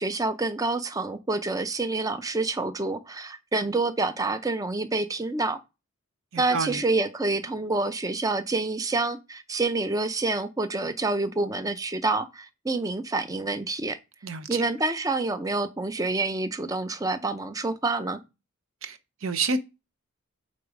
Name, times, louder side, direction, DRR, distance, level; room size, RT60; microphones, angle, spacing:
voice 1, 0.0-5.6 6.4-14.0 14.5-18.2, right 3 dB, 15° right, 0.5 m, -27 dB
voice 2, 6.3-6.8 14.2-14.6 18.8-19.6, right 3 dB, 80° right, 0.7 m, -29 dB
8.4 x 3.9 x 4.8 m
head